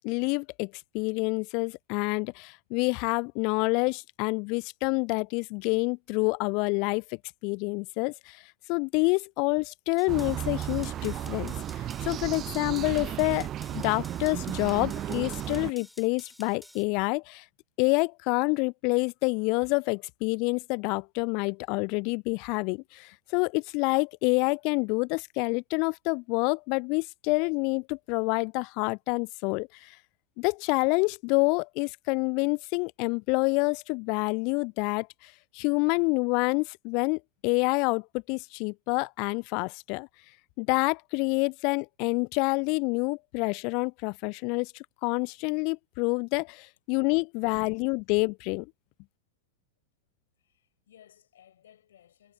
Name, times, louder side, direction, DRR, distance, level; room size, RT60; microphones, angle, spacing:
voice 1, 0.0-7.0 7.4-8.4 8.7-17.4 17.8-30.0 30.4-40.1 40.6-44.7 45.0-48.7, left 32 dB, 45° left, 0.4 m, -28 dB
sound 1, 10.0-16.8, left 1 dB, 5° left, 3.1 m, -52 dB
sound 2, 10.1-15.7, right 11 dB, 30° right, 0.7 m, -34 dB
voice 2, 50.4-52.3, left 10 dB, 60° left, 7.3 m, -59 dB
figure-of-eight pair, 90°, 0 cm